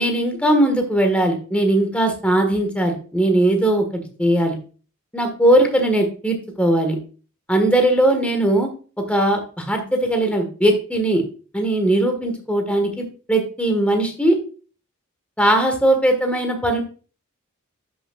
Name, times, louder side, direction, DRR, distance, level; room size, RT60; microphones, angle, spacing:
voice 1, 0.0-3.8 4.2-4.6 5.1-7.0 7.5-8.7 9.1-11.2 11.5-14.4 15.4-16.8, right 1 dB, 5° left, 4 dB, 1.3 m, -19 dB
11.5 x 6.1 x 2.3 m, 0.39 s
head